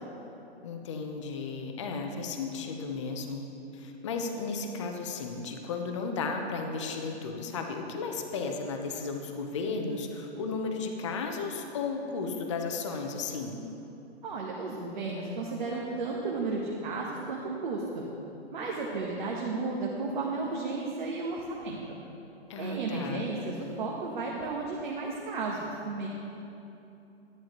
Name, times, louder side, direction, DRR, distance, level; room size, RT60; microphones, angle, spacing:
voice 1, 0.6-3.4 3.7-13.6 22.5-23.2, left 4 dB, 30° left, 4 dB, 0.6 m, -34 dB
voice 2, 14.2-18.0 18.5-21.8 22.6-26.1, right 3 dB, 45° right, -3 dB, 1.1 m, -33 dB
11.0 x 10.5 x 3.0 m, 2.9 s
hypercardioid pair, 165°, 32 cm